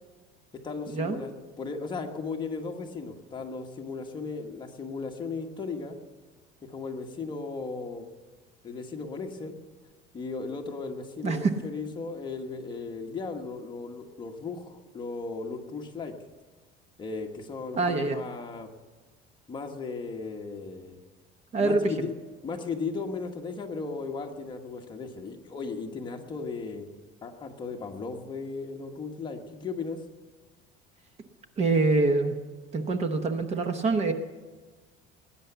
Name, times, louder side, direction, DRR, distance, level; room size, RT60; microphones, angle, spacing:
voice 1, 0.6-6.0 6.6-8.1 8.6-9.6 10.1-16.1 17.0-18.7 19.5-21.0 21.6-22.1 22.4-26.9 27.2-30.0, left 4 dB, 20° left, 2 dB, 1.3 m, -36 dB
voice 2, 17.8-18.2 21.5-22.1 31.6-32.3 32.7-34.1, right 3 dB, 30° right, 7 dB, 1.0 m, -25 dB
19.0 x 9.8 x 6.9 m, 1.3 s
cardioid pair, 165°, 21 cm